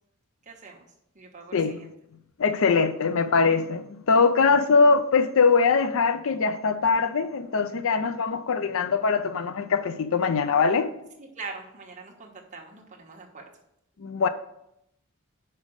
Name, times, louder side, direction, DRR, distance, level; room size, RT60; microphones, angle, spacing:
voice 1, 0.4-0.9 1.1-1.9 10.2-10.5 11.2-13.4, right 4 dB, 35° right, 1.3 m, -43 dB
voice 2, 1.5-1.9 2.4-10.9 14.0-14.3, left 5 dB, 65° left, 0.5 m, -22 dB
5.5 x 5.0 x 6.4 m
head